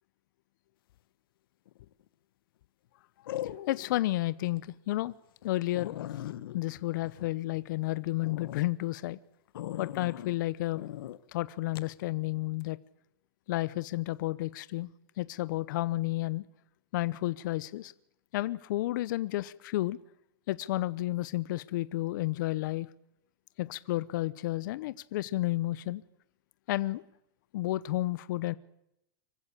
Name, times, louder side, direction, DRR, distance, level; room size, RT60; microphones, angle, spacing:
sound 1, 1.7-2.1 3.3-4.0 4.5-4.6 5.1-5.2 5.4-5.5 5.7-7.8 8.2-8.6 9.5-10.3 10.7-11.2 11.7-11.9, left 13 dB, 70° left, 1.2 m, -40 dB
voice 1, 3.4-5.1 5.4-5.9 6.5-9.2 9.8-10.9 11.3-12.8 13.5-16.4 16.9-17.9 18.3-20.0 20.5-22.9 23.6-26.0 26.7-27.0 27.5-28.5, left 17 dB, 55° left, 17 dB, 0.8 m, -31 dB
24.5 x 15.5 x 8.7 m, 0.81 s
supercardioid pair, 155°, 12 cm